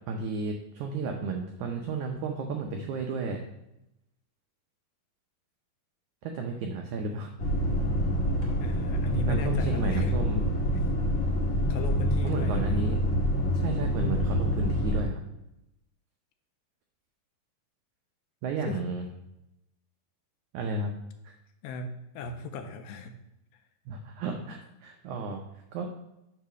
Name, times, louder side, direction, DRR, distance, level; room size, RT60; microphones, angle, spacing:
voice 1, 0.1-3.4 6.2-7.3 9.3-10.4 12.2-13.0 13.5-15.2 18.4-19.1 20.5-20.9 21.2-21.3 23.9-25.4 25.7-25.9, right 3 dB, 85° right, 2 dB, 1.7 m, -32 dB
sound 1, 7.4-15.0, equal, 65° left, 0.7 m, -27 dB
voice 2, 8.6-10.1 10.7-10.8 11.7-12.9 18.7-18.9 21.6-23.2, left 2 dB, 80° left, 6 dB, 2.4 m, -37 dB
8.7 x 3.8 x 6.1 m, 0.87 s
omnidirectional pair, 4.4 m